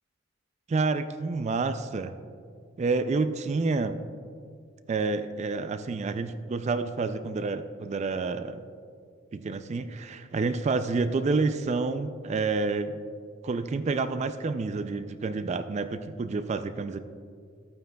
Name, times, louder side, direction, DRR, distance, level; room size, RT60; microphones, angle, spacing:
voice 1, 0.7-2.1 2.8-4.0 4.9-8.6 9.3-13.0 13.4-17.0, right 3 dB, 35° right, 10 dB, 0.3 m, -29 dB
14.0 x 9.2 x 2.3 m, 2.3 s
head